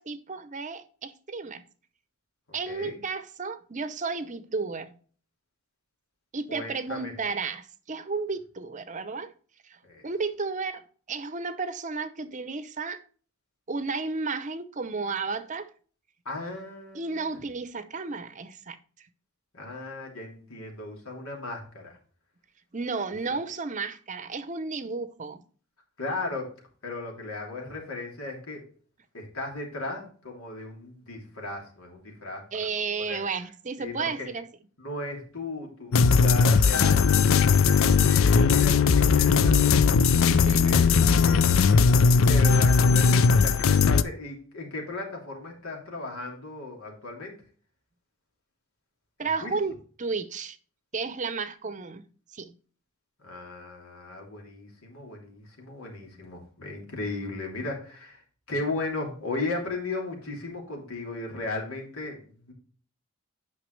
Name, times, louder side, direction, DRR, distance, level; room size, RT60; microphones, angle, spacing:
voice 1, 0.0-1.6 2.5-5.0 6.3-9.3 9.6-9.8 10.0-13.0 13.7-15.7 16.9-18.8 22.7-25.4 32.5-34.5 40.3-40.8 49.2-49.7 50.0-50.6 50.9-52.0 52.3-52.5, right 4 dB, 35° right, 0.7 m, -33 dB
voice 2, 2.7-3.0 6.5-7.1 9.8-10.1 16.2-17.3 19.5-22.0 26.0-26.5 26.8-28.7 29.1-33.2 33.8-34.3 34.8-39.8 40.6-41.9 42.2-47.4 49.2-49.5 53.2-58.2 58.5-62.5, left 2 dB, 85° left, 3.0 m, -36 dB
sound 1, 35.9-44.0, left 5 dB, 65° left, 0.4 m, -19 dB
9.1 x 5.8 x 3.2 m
head